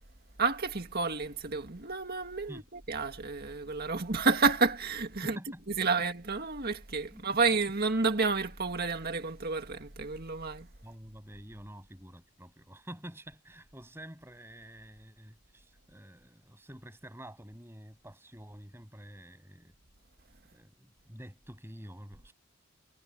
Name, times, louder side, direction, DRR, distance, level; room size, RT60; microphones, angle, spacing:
voice 1, 0.4-5.4 5.7-10.7, right 4 dB, 45° right, 2.0 m, -30 dB
voice 2, 5.2-5.6 7.1-7.4 10.8-19.7 20.5-22.3, equal, 10° right, 7.9 m, -48 dB
head